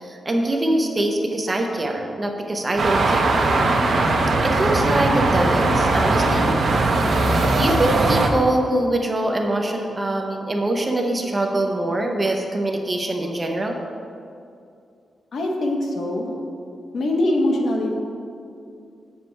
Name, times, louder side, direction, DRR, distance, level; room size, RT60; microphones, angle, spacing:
voice 1, 0.0-3.4 4.4-6.5 7.6-13.8, right 1 dB, 20° right, 2 dB, 0.7 m, -23 dB
sound 1, 2.8-8.3, right 2 dB, 55° right, 0.8 m, -19 dB
voice 2, 15.3-16.3 16.9-17.9, left 1 dB, 55° left, 1 dB, 1.0 m, -22 dB
7.4 x 7.1 x 4.4 m, 2.5 s
wide cardioid pair, 180°, 0 cm